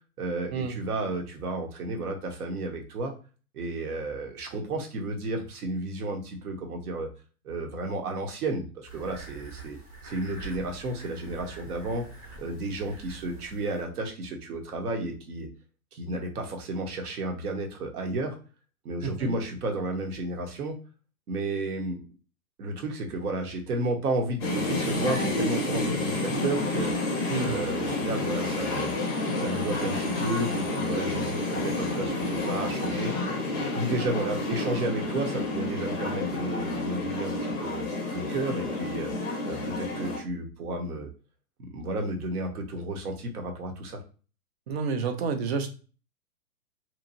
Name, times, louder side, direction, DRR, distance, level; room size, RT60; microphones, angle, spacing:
voice 1, 0.2-3.1 3.5-7.1 7.4-12.1 12.4-15.5 15.9-18.4 18.8-20.8 21.3-22.0 22.6-26.9 27.4-28.9 29.4-33.1 33.7-39.1 39.5-41.1 41.6-44.0, right 2 dB, 80° right, 4 dB, 1.0 m, -32 dB
sound 1, 8.8-13.8, right 4 dB, 15° right, 0.7 m, -45 dB
voice 2, 19.0-19.4 27.3-27.5 44.7-45.7, right 5 dB, 45° right, 6 dB, 0.5 m, -29 dB
sound 2, 24.4-40.2, left 2 dB, 20° left, 0.4 m, -30 dB
2.9 x 2.3 x 2.5 m, 0.37 s
hypercardioid pair, 155°, 45 cm